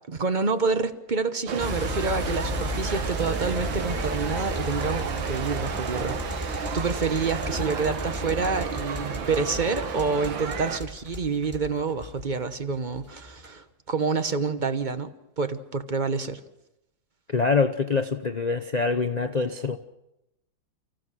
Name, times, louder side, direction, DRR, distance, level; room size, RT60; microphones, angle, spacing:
voice 1, 0.1-16.4, right 4 dB, 35° right, 0.8 m, -28 dB
sound 1, 1.5-10.8, right 6 dB, 85° right, 2.1 m, -32 dB
sound 2, 1.6-12.5 12.9-13.5, left 1 dB, 5° right, 3.4 m, -34 dB
voice 2, 17.3-19.8, left 4 dB, 50° left, 0.5 m, -25 dB
30.0 x 16.0 x 6.2 m
omnidirectional pair, 2.0 m